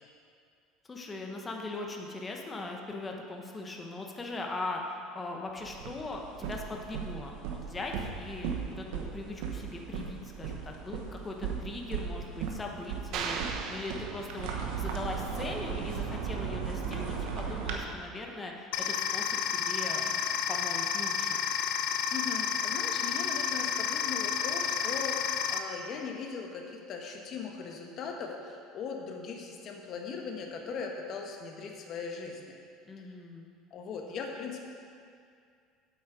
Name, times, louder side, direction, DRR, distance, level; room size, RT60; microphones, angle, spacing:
voice 1, 0.9-4.8 5.1-14.5 14.8-21.4 32.8-33.5, left 2 dB, 15° left, 1 dB, 0.9 m, -40 dB
sound 1, 5.6-17.8, right 6 dB, 80° right, 1.1 m, -37 dB
sound 2, 13.1-14.9, right 5 dB, 50° right, 0.7 m, -37 dB
sound 3, 18.7-25.6, left 8 dB, 60° left, 0.5 m, -31 dB
voice 2, 22.1-32.4 33.7-34.6, left 5 dB, 40° left, 2 dB, 1.1 m, -39 dB
8.0 x 7.8 x 4.9 m, 2.3 s
cardioid pair, 155°, 0 cm